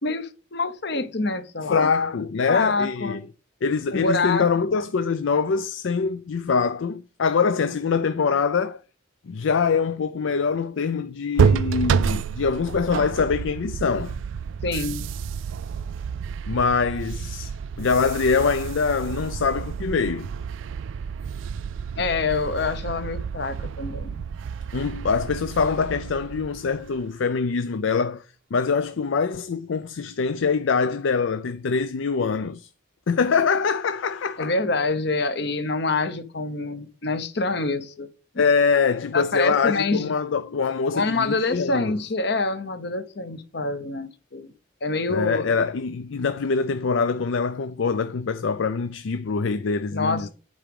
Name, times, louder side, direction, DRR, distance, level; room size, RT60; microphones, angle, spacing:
voice 1, 0.0-1.9 2.5-3.2 3.9-4.6 14.6-15.1 22.0-24.3 34.4-38.1 38.3-38.4 39.1-40.1 40.9-44.5 44.8-45.5 49.9-50.3, left 3 dB, 55° left, 0.9 m, -26 dB
voice 2, 1.7-3.2 3.6-8.8 9.3-14.2 16.5-17.5 17.8-20.3 24.7-28.2 28.5-32.7 33.1-34.5 38.4-41.9 45.1-50.3, left 5 dB, 80° left, 0.5 m, -24 dB
sound 1, 11.4-27.1, right 6 dB, 75° right, 0.3 m, -29 dB
8.9 x 4.9 x 5.2 m
head